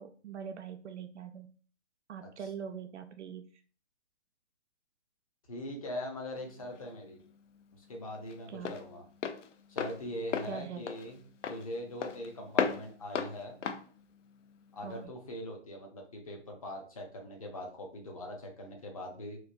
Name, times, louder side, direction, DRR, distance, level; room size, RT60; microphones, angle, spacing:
voice 1, 0.0-1.5 2.1-3.4 8.5-8.7 10.5-10.8 14.8-15.1, right 7 dB, 65° right, 7 dB, 0.5 m, -42 dB
voice 2, 5.5-7.2 7.7-9.0 9.7-11.2 11.5-13.6 14.7-19.4, left 1 dB, 30° left, 1 dB, 0.5 m, -41 dB
Walk footsteps, 6.4-15.1, left 7 dB, 75° left, 0.5 m, -37 dB
3.0 x 2.1 x 2.5 m, 0.42 s
hypercardioid pair, 155°, 37 cm